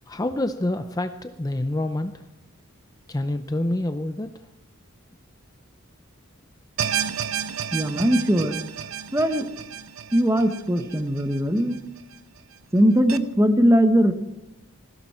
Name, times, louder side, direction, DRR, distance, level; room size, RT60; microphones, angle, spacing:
voice 1, 0.1-2.2 3.1-4.3, left 1 dB, 15° left, 9 dB, 0.6 m, -27 dB
sound 1, 6.8-12.0 12.4-12.5 13.1-13.2, right 8 dB, 85° right, 0.8 m, -31 dB
voice 2, 7.7-8.6 9.1-9.5 10.1-11.8 12.7-14.1, equal, 15° right, 8 dB, 1.1 m, -20 dB
19.5 x 16.0 x 4.4 m, 0.93 s
head